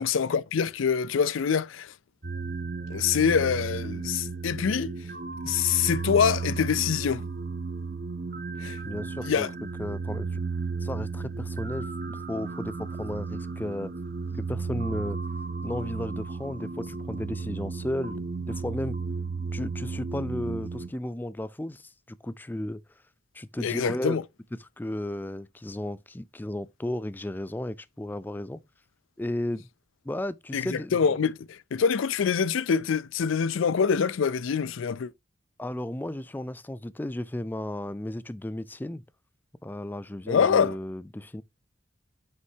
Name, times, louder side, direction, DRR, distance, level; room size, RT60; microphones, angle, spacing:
voice 1, 0.0-1.9 2.9-4.9 5.4-7.2 8.6-8.8 9.2-9.5 23.6-24.2 30.5-35.1 40.3-40.7, left 6 dB, 90° left, 0.4 m, -25 dB
sound 1, 2.2-20.9, right 4 dB, 45° right, 0.8 m, -34 dB
voice 2, 8.8-9.5 9.8-10.4 10.8-13.9 14.3-15.2 15.6-19.0 19.5-22.8 23.3-24.2 24.6-28.6 29.2-29.7 30.0-31.2 35.6-39.0 39.6-41.4, left 1 dB, 10° left, 0.3 m, -34 dB
7.8 x 5.7 x 2.7 m
head